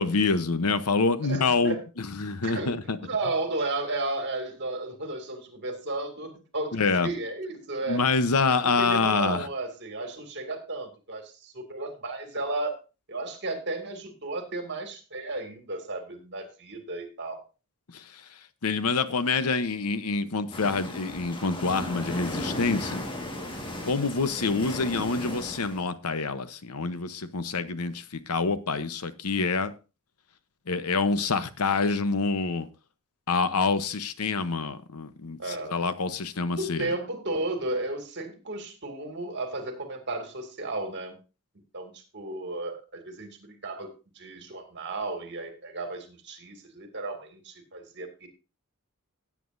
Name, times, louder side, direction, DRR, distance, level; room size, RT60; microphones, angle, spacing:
voice 1, 0.0-3.0 6.7-7.1 7.9-9.5 17.9-18.2 18.6-23.0 23.8-29.7 30.7-32.7 33.3-36.9, left 4 dB, 85° left, 0.9 m, -26 dB
voice 2, 1.3-1.8 2.4-8.0 8.5-12.8 13.1-17.4 35.4-35.8 36.5-41.1 41.7-48.3, right 2 dB, 55° right, 2.4 m, -34 dB
sound 1, 20.5-25.8, left 1 dB, 25° left, 1.7 m, -36 dB
16.5 x 8.4 x 2.6 m
head